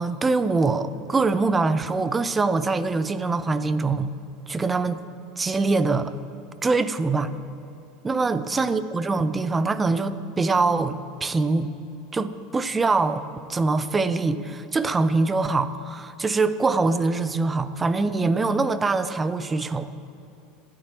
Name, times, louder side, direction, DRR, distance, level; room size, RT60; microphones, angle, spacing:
voice 1, 0.0-4.1 4.5-5.0 5.4-6.1 6.6-7.4 8.0-11.7 12.1-19.9, right 3 dB, 20° right, 13 dB, 0.7 m, -23 dB
26.5 x 9.9 x 3.1 m, 2.8 s
hypercardioid pair, 85°, 0 cm